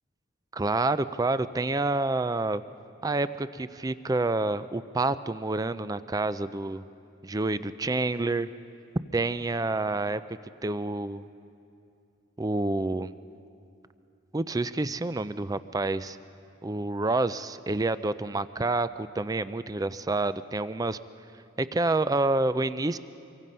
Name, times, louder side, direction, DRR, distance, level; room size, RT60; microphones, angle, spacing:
voice 1, 0.5-2.6 3.0-6.8 7.2-8.5 9.1-11.3 12.4-13.1 14.3-16.2 16.6-21.0 21.6-23.0, right 2 dB, 20° right, 14 dB, 0.4 m, -28 dB
25.5 x 23.5 x 5.5 m, 2.6 s
head